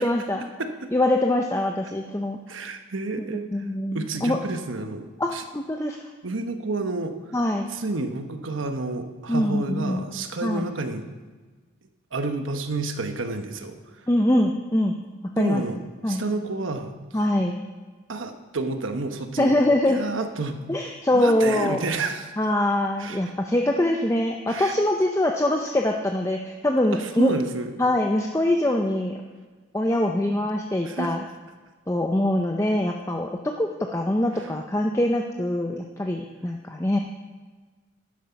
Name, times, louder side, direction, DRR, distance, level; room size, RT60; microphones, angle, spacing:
voice 1, 0.0-0.5 0.9-2.4 3.5-4.4 5.2-6.0 7.3-7.7 9.3-10.1 10.4-10.7 14.1-14.9 15.4-15.6 16.0-16.2 17.1-17.6 19.4-20.0 20.7-21.8 22.4-27.3 27.8-29.2 29.7-31.2 31.9-37.0, left 1 dB, 15° left, 2 dB, 0.5 m, -23 dB
voice 2, 2.5-3.6 3.9-5.4 6.2-7.1 7.7-11.1 12.1-14.1 15.3-15.8 16.0-16.9 18.1-19.5 19.9-20.6 21.1-22.3 23.0-23.3 24.5-24.7 26.9-27.7 30.8-31.1 34.4-34.5, right 3 dB, 90° right, 7 dB, 1.1 m, -30 dB
11.5 x 9.5 x 5.8 m, 1.4 s
head